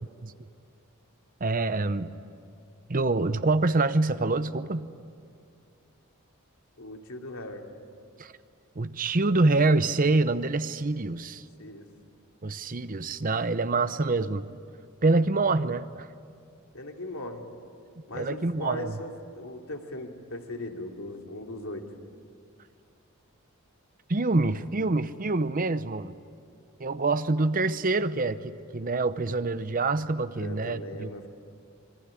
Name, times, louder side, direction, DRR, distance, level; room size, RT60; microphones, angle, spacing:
voice 1, 1.4-2.1 2.9-4.9 8.2-8.3 8.8-11.4 12.4-14.5 15.0-16.1 18.1-18.9 24.1-26.1 26.8-31.1, right 3 dB, 40° right, 13 dB, 0.8 m, -26 dB
voice 2, 6.8-7.6 11.6-11.9 16.7-17.5 18.1-21.9 30.3-31.3, left 1 dB, 75° left, 2 dB, 2.7 m, -38 dB
26.5 x 22.5 x 10.0 m, 2.3 s
head